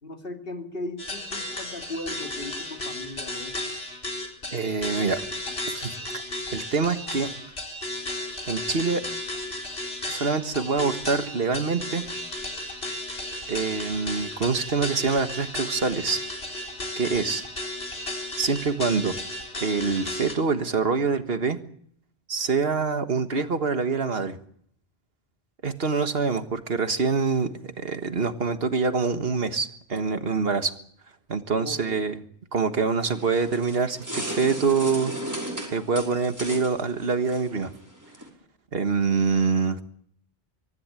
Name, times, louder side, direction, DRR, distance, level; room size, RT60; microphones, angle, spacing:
voice 1, 0.0-3.8 31.6-32.1, left 2 dB, 65° left, 4 dB, 2.7 m, -37 dB
sound 1, 1.0-20.4, left 1 dB, 85° left, 4.2 m, -34 dB
voice 2, 4.5-5.2 5.7-5.9 6.5-7.3 8.5-9.0 10.1-12.1 13.5-16.2 17.0-17.4 18.4-19.2 19.6-21.6 22.3-24.4 25.6-30.7 31.3-32.2 32.5-35.1 35.7-37.7 38.7-39.8, right 4 dB, 70° right, 9 dB, 1.8 m, -25 dB
sound 2, 33.0-38.3, right 1 dB, 15° right, 5.5 m, -36 dB
24.5 x 14.5 x 8.9 m, 0.64 s
omnidirectional pair, 1.0 m